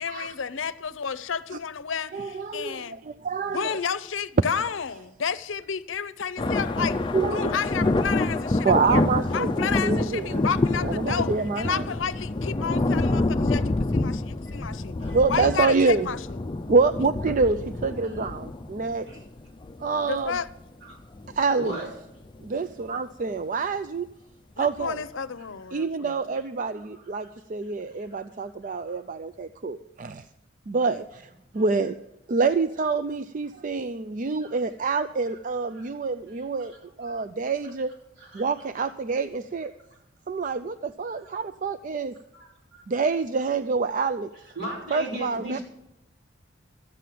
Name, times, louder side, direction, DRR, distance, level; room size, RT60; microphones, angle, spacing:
voice 1, 0.0-3.0 3.5-7.0 7.3-9.0 9.3-14.9 15.3-16.2 20.1-20.5 24.6-26.2, left 6 dB, 85° left, 0.6 m, -31 dB
voice 2, 2.1-3.7 7.1-7.5 8.6-10.4 10.8-11.9 15.1-16.1 16.7-19.1 19.8-20.4 21.3-21.7 22.4-24.1 24.6-25.0 25.7-30.3 30.7-32.0 32.3-36.7 37.0-37.9 38.3-39.7 40.3-42.1 42.9-44.3 44.9-45.6, right 4 dB, 40° right, 0.4 m, -26 dB
sound 1, 6.4-20.5 21.0-21.3 22.2-22.5 23.2-23.3 24.8-24.9, left 2 dB, 25° left, 0.4 m, -27 dB
voice 3, 21.5-21.9 26.7-27.3 28.0-29.0 31.5-31.6 34.4-34.6 35.3-35.4 35.7-35.9 36.3-37.1 38.2-38.5 39.9-40.0 41.1-41.3 42.3-43.0 44.5-45.6, right 1 dB, 70° right, 6.0 m, -39 dB
13.5 x 8.4 x 7.6 m
head